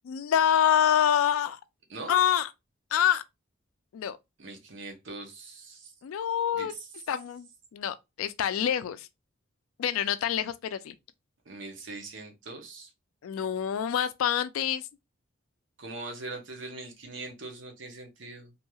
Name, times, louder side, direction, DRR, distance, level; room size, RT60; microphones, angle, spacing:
voice 1, 0.1-1.6 2.1-2.5 2.9-3.2 3.9-4.2 6.0-6.7 7.1-9.1 9.8-10.9 13.2-14.9, left 9 dB, 85° left, 0.3 m, -26 dB
voice 2, 4.4-5.9 6.5-6.9 11.5-12.9 15.8-18.5, right 3 dB, 65° right, 0.8 m, -41 dB
3.0 x 2.7 x 2.2 m
head